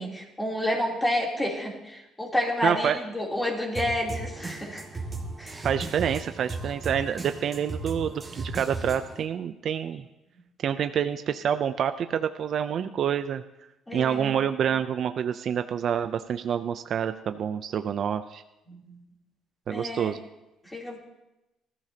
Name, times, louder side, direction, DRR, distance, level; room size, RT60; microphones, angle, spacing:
voice 1, 0.0-4.8 5.4-5.6 13.9-14.3 18.7-18.9 19.7-20.1 20.7-21.0, left 1 dB, 10° left, -2 dB, 3.2 m, -29 dB
voice 2, 2.6-3.0 5.6-10.0 10.6-13.4 13.9-18.4 19.7-20.2, right 8 dB, 50° right, 9 dB, 0.5 m, -27 dB
sound 1, 3.7-9.2, right 3 dB, 20° right, 2.1 m, -36 dB
20.0 x 14.0 x 2.9 m, 0.95 s
cardioid pair, 130°, 0 cm